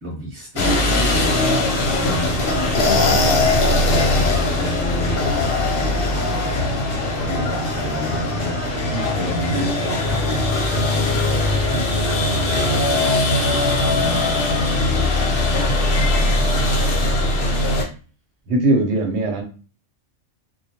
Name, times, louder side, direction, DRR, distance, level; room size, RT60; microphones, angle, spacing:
voice 1, 0.0-11.8 12.5-14.3 14.6-17.1, equal, 15° right, -4 dB, 0.8 m, -32 dB
sound 1, 0.6-17.8, left 2 dB, 55° left, 0.7 m, -20 dB
voice 2, 18.5-19.4, right 2 dB, 65° right, 3 dB, 0.9 m, -21 dB
2.2 x 2.1 x 2.7 m, 0.36 s
omnidirectional pair, 1.3 m